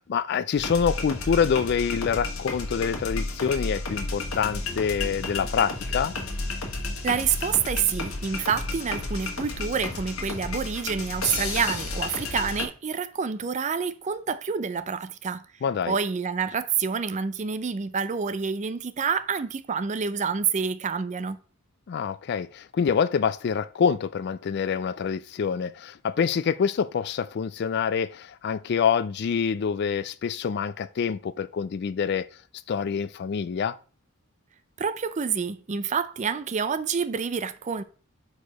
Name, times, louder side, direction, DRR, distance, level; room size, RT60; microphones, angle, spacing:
voice 1, 0.0-6.1 15.6-16.0 21.9-32.3 32.7-33.8, left 6 dB, 50° left, 0.3 m, -26 dB
sound 1, 0.6-12.7, left 3 dB, 75° left, 1.4 m, -32 dB
voice 2, 7.0-15.4 15.9-21.4 34.8-37.8, right 6 dB, 35° right, 0.4 m, -28 dB
4.7 x 4.6 x 5.2 m
head